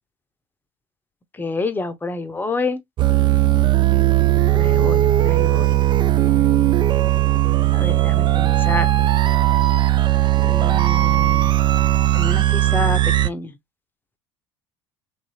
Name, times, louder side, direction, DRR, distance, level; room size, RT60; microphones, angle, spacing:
voice 1, 1.3-2.8 4.5-5.7 7.7-8.9 10.4-11.5 12.1-13.5, left 3 dB, 15° left, 0.7 m, -28 dB
sound 1, 3.0-13.3, right 14 dB, 30° right, 0.3 m, -17 dB
3.1 x 2.7 x 2.8 m
hypercardioid pair, 65°, 15 cm